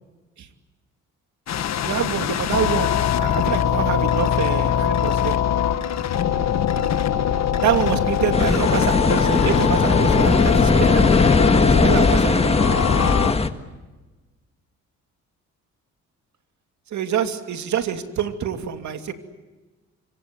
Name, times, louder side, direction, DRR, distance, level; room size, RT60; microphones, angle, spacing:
sound 1, 1.5-13.3, left 9 dB, 60° left, 1.6 m, -22 dB
voice 1, 1.8-5.4 7.6-11.1 11.8-12.6 16.9-19.1, right 9 dB, 70° right, 7 dB, 2.8 m, -26 dB
sound 2, 8.3-13.5, left 3 dB, 20° left, 1.7 m, -18 dB
26.0 x 25.0 x 7.9 m, 1.2 s
cardioid pair, 90°, 30 cm